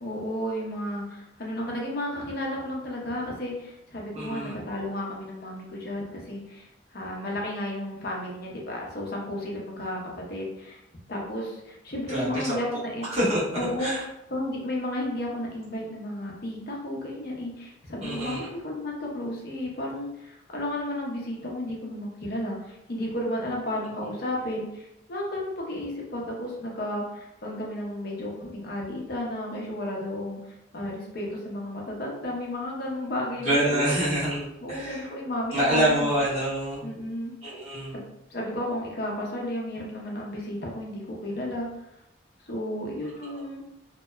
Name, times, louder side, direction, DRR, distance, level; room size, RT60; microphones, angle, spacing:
voice 1, 0.0-10.8 11.1-13.0 13.6-13.9 14.3-33.9 34.6-36.1 36.8-37.3 37.9-38.0 38.3-41.7 42.4-43.6, left 1 dB, 50° left, -2 dB, 0.6 m, -33 dB
voice 2, 4.1-4.5 12.1-12.5 13.1-13.4 13.8-14.0 18.0-18.5 33.4-35.0 35.5-36.8 37.4-37.9 43.2-43.4, right 1 dB, 35° right, -10 dB, 1.2 m, -26 dB
2.7 x 2.1 x 2.2 m, 0.85 s
head